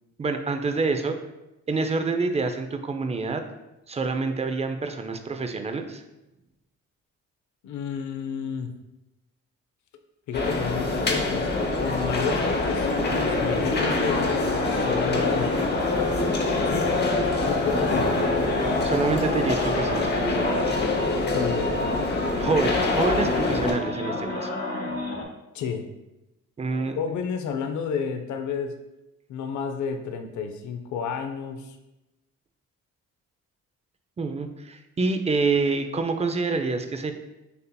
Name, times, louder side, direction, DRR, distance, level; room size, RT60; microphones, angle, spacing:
voice 1, 0.2-1.2 1.7-3.4 3.9-6.0 18.8-20.7 22.3-24.5 26.6-27.0 34.2-37.1, right 4 dB, 20° right, 7 dB, 0.4 m, -27 dB
voice 2, 7.6-8.8 10.3-15.6 16.7-17.0 17.4-18.2 21.3-21.7 25.5-25.9 26.9-28.8 29.3-31.8, left 6 dB, 70° left, 7 dB, 0.6 m, -31 dB
sound 1, 10.3-23.7, left 2 dB, 35° left, 0.8 m, -25 dB
sound 2, 12.4-25.2, left 3 dB, 55° left, 1.1 m, -30 dB
6.6 x 2.8 x 2.2 m, 0.95 s
cardioid pair, 90°, 30 cm